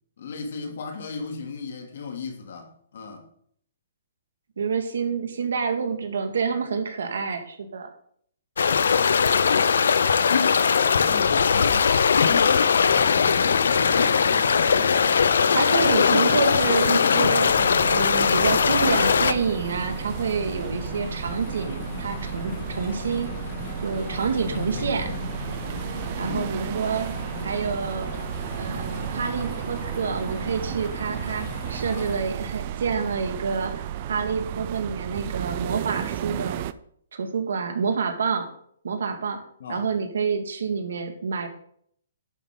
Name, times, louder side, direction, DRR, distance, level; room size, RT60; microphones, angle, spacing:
voice 1, 0.2-3.3 8.8-9.8 10.6-15.0 26.2-26.6 39.6-39.9, left 4 dB, 60° left, 2.6 m, -36 dB
voice 2, 4.6-7.9 15.5-17.5 17.9-23.3 23.8-25.1 26.2-27.1 27.4-28.1 28.6-33.7 34.1-36.6 37.1-38.5 38.8-39.4 39.7-41.5, right 5 dB, 80° right, 2.0 m, -28 dB
sound 1, 8.6-19.3, left 6 dB, 80° left, 0.6 m, -20 dB
sound 2, 12.8-32.2, left 5 dB, 45° left, 2.1 m, -37 dB
sound 3, 17.5-36.7, right 11 dB, 35° right, 0.5 m, -33 dB
11.0 x 8.1 x 3.9 m
hypercardioid pair, 160°, 0 cm